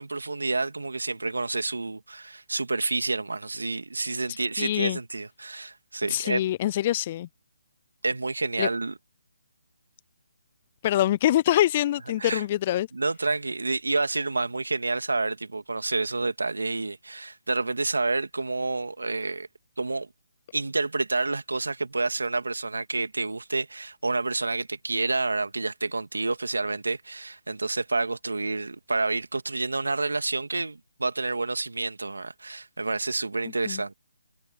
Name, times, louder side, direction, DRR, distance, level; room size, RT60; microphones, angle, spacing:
voice 1, 0.0-6.4 8.0-8.9 12.2-12.4 12.9-19.5 19.8-20.1 20.5-33.9, right 3 dB, 85° right, 2.5 m, -29 dB
voice 2, 4.6-5.0 6.1-7.3 8.6-8.7 10.8-12.9 33.7-33.8, left 13 dB, 30° left, 0.4 m, -24 dB
figure-of-eight pair, 155°, 0 cm